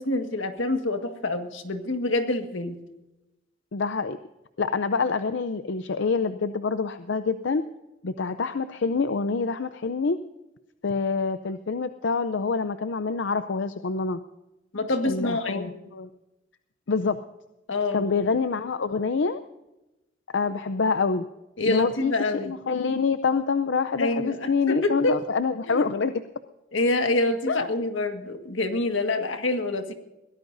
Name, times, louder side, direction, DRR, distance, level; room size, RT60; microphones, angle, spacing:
voice 1, 0.0-2.8 14.7-15.7 17.7-18.0 21.6-22.5 24.0-25.2 25.6-25.9 26.7-29.9, left 2 dB, 90° left, 6 dB, 1.7 m, -26 dB
voice 2, 3.7-4.2 4.6-7.6 8.0-10.2 10.8-14.2 15.0-16.1 16.9-17.2 17.9-19.4 20.3-21.2 21.7-26.1 27.5-27.7, left 4 dB, 70° left, 11 dB, 0.6 m, -26 dB
22.5 x 16.5 x 2.7 m, 0.98 s
head